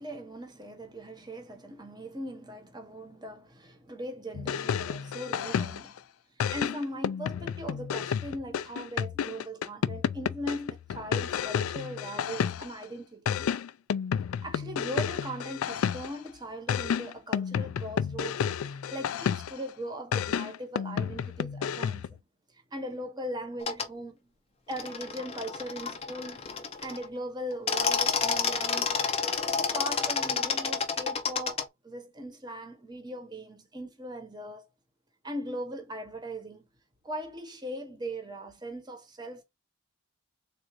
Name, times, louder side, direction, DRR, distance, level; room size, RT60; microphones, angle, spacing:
voice 1, 0.0-6.0 6.4-13.5 14.4-22.2 22.5-24.3 24.7-26.4 26.8-29.1 29.5-34.7 35.2-36.7 37.0-39.4, right 1 dB, 20° right, 1.0 m, -39 dB
sound 1, 4.3-6.0 6.4-12.8 13.3-16.3 16.7-19.7 20.1-22.2, left 7 dB, 85° left, 0.3 m, -31 dB
sound 2, 23.6-23.9 24.7-27.1 27.5-31.6, left 6 dB, 30° left, 0.5 m, -30 dB
3.8 x 2.5 x 4.6 m
head